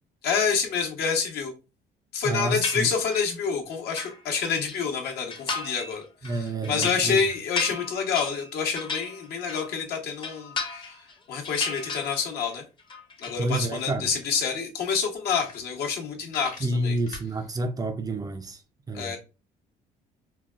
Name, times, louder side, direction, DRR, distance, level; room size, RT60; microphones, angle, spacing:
voice 1, 0.2-1.5 2.1-12.6 13.2-17.0 18.9-19.2, left 6 dB, 70° left, 1.0 m, -28 dB
voice 2, 2.2-2.9 6.2-7.2 13.4-14.1 16.6-18.6 18.9-19.2, right 2 dB, 20° right, 0.4 m, -29 dB
sound 1, 2.6-3.3 3.7-4.8 5.3-5.9 6.2-9.8 10.1-11.1 11.4-12.5 12.8-13.4, left 4 dB, 30° left, 0.6 m, -35 dB
sound 2, 15.4-16.0 16.3-17.3, left 4 dB, 50° left, 1.2 m, -44 dB
3.8 x 2.2 x 2.3 m
cardioid pair, 110°, 17 cm